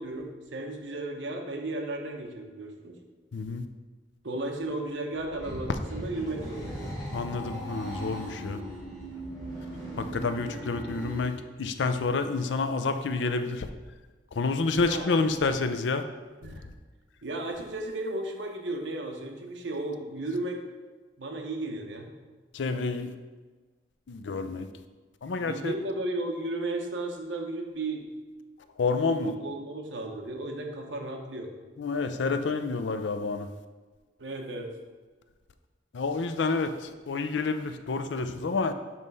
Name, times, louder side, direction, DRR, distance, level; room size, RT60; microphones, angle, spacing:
voice 1, 0.0-3.0 4.2-6.8 14.8-15.1 16.4-16.7 17.2-20.6 21.2-22.1 25.3-28.1 28.9-31.5 34.2-34.7, right 2 dB, 80° right, 2 dB, 0.9 m, -34 dB
voice 2, 3.3-3.7 7.1-8.6 10.0-13.7 14.3-16.0 22.5-23.1 24.1-24.7 25.2-25.7 28.8-29.3 31.8-33.5 35.9-38.7, left 4 dB, 80° left, 9 dB, 0.5 m, -29 dB
sound 1, 5.2-11.3, right 1 dB, ahead, 2.1 m, -38 dB
7.2 x 3.2 x 5.3 m, 1.3 s
head